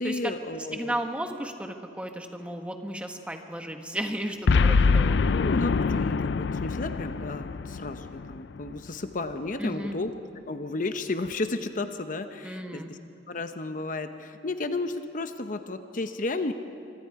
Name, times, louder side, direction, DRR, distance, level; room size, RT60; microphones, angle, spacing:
voice 1, 0.0-1.0 5.3-10.1 10.4-13.0 13.3-16.5, left 2 dB, 50° left, 8 dB, 0.8 m, -33 dB
voice 2, 0.7-5.2 9.6-10.0 12.4-12.9, right 1 dB, 5° right, 4 dB, 1.3 m, -34 dB
Boom, 4.5-8.9, left 4 dB, 80° left, 0.4 m, -24 dB
25.5 x 24.0 x 4.8 m, 2.6 s
head